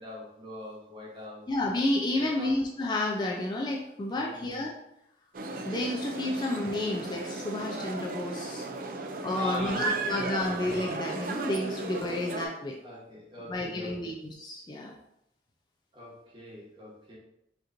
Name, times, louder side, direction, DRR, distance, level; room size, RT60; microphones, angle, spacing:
voice 1, 0.0-1.5 2.1-2.6 4.1-4.7 9.0-10.5 11.6-11.9 12.8-14.1 15.9-17.2, left 1 dB, 25° right, -4 dB, 1.1 m, -42 dB
voice 2, 1.5-4.7 5.7-8.7 9.2-12.8 13.4-14.9, left 1 dB, 25° left, -1 dB, 0.4 m, -31 dB
sound 1, 5.3-12.5, right 3 dB, 50° right, 0.4 m, -35 dB
5.1 x 2.9 x 2.6 m, 0.80 s
head